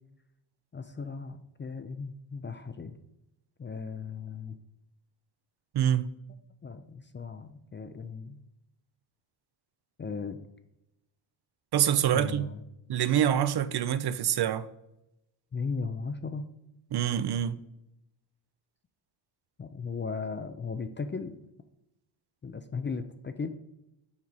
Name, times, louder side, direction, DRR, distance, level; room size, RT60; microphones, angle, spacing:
voice 1, 0.7-3.0 3.6-4.6 6.6-8.4 10.0-10.4 12.1-12.6 15.5-16.5 19.6-21.4 22.4-23.5, left 5 dB, 25° left, 0.4 m, -36 dB
voice 2, 5.7-6.1 11.7-12.5 12.9-14.7 16.9-17.6, right 10 dB, 55° right, 0.5 m, -26 dB
7.3 x 4.8 x 4.0 m
cardioid pair, 110°, 48 cm